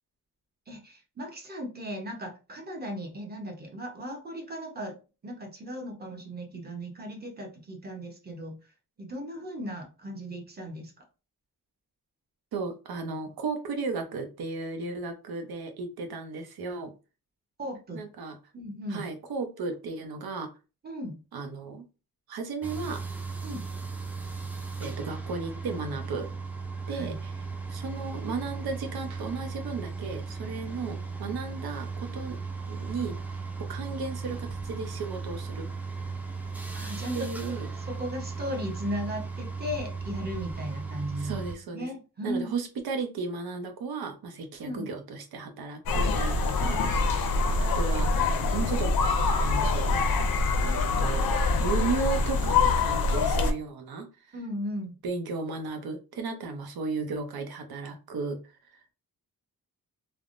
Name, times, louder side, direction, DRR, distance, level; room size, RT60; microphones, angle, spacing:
voice 1, 0.7-5.0 5.2-8.6 9.0-10.9 17.6-18.0 18.5-19.1 20.8-21.2 23.4-23.6 26.8-27.2 36.7-37.5 37.9-41.4 41.7-42.5 44.6-44.9 46.6-46.7 54.3-54.9, equal, 25° right, 2 dB, 0.8 m, -36 dB
voice 2, 12.5-16.9 17.9-18.3 18.9-20.5 21.3-21.8 22.3-23.1 24.8-26.3 26.9-27.3 27.7-32.4 32.7-33.2 33.7-35.7 37.1-37.7 41.2-41.9 42.2-48.2 48.5-48.9 49.4-49.9 50.6-54.3 55.0-58.4, right 4 dB, 85° right, 5 dB, 0.8 m, -35 dB
sound 1, 22.6-41.6, right 4 dB, 5° right, 0.3 m, -36 dB
sound 2, 45.9-53.5, left 3 dB, 75° left, 0.6 m, -25 dB
3.4 x 2.1 x 2.5 m, 0.31 s
wide cardioid pair, 155°, 36 cm